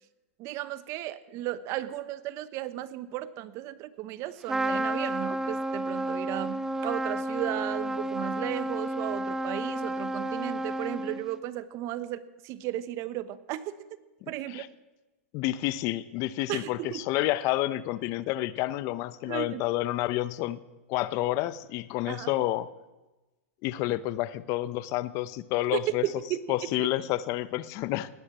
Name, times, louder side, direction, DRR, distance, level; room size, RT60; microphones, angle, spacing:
voice 1, 0.4-13.8 14.3-14.6 16.5-17.0 19.2-19.6 22.1-22.3 25.7-26.9, right 14 dB, 40° right, 14 dB, 1.0 m, -35 dB
Trumpet, 4.5-11.4, right 1 dB, 5° right, 0.6 m, -31 dB
voice 2, 14.2-14.7 15.3-20.6 20.9-22.7 23.6-26.0 26.5-28.1, left 15 dB, 45° left, 16 dB, 0.8 m, -29 dB
18.5 x 10.0 x 7.4 m, 1.1 s
hypercardioid pair, 130°, 7 cm